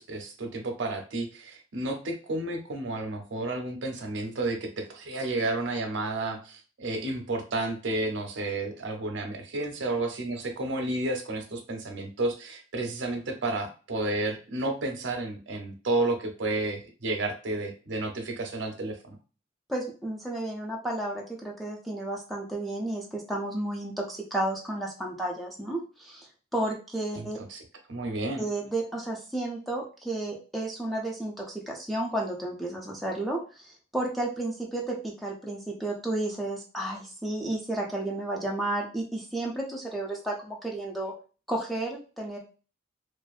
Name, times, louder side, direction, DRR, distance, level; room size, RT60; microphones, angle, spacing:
voice 1, 0.0-19.2 27.2-27.6 27.9-28.4, right 2 dB, 80° right, 4 dB, 0.6 m, -31 dB
voice 2, 19.7-26.3 26.5-27.4 28.4-41.1 41.5-42.4, right 1 dB, ahead, -2 dB, 0.4 m, -32 dB
2.5 x 2.1 x 2.3 m, 0.35 s
head